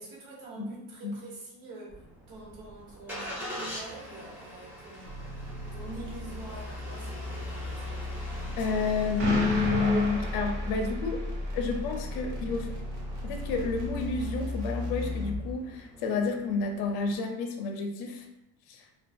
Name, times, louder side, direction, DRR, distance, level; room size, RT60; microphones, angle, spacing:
voice 1, 0.0-2.0 2.3-5.3 5.7-8.1 10.8-10.9, right 2 dB, 90° right, -3 dB, 1.0 m, -45 dB
Engine starting, 1.9-17.2, right 1 dB, 5° right, 0.4 m, -43 dB
sound 1, 5.0-15.5, left 1 dB, 50° right, 0.6 m, -36 dB
voice 2, 8.6-11.2 11.5-12.7 13.2-18.3 18.7-18.8, left 4 dB, 70° left, 3 dB, 0.5 m, -30 dB
Explosion, 9.2-11.4, right 1 dB, 70° right, 1.1 m, -32 dB
2.3 x 2.3 x 2.5 m, 0.90 s
cardioid pair, 170°, 39 cm